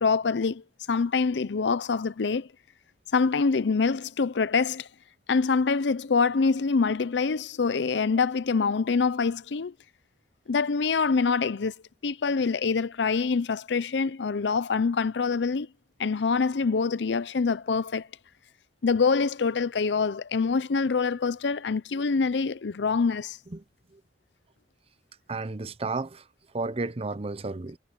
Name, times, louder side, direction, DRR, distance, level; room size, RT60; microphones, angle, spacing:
voice 1, 0.0-2.5 3.1-4.9 5.3-9.7 10.5-11.7 12.0-15.7 16.0-18.1 18.8-23.4, left 4 dB, 75° left, 0.6 m, -25 dB
voice 2, 25.3-26.2 26.5-27.8, right 3 dB, 35° right, 0.8 m, -32 dB
head